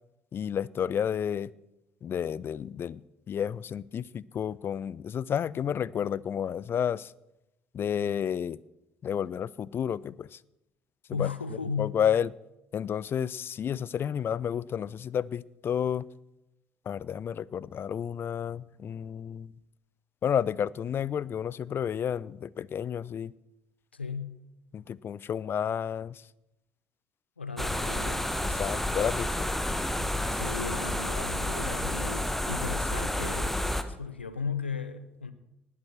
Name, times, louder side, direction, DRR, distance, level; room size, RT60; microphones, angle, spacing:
voice 1, 0.3-1.5 2.0-3.0 3.3-7.1 7.7-8.6 9.0-10.4 11.1-11.3 11.8-12.3 12.7-16.1 16.9-19.5 20.2-23.3 24.7-26.2 28.4-29.5, left 8 dB, 40° left, 23 dB, 0.4 m, -31 dB
voice 2, 11.1-11.9 23.9-24.4 27.4-28.3 30.3-33.5 33.9-35.3, left 5 dB, 90° left, 13 dB, 0.7 m, -36 dB
sound 1, 27.6-33.8, left 1 dB, 5° left, 1.2 m, -30 dB
19.5 x 7.5 x 6.1 m, 0.91 s
figure-of-eight pair, 50°, 6 cm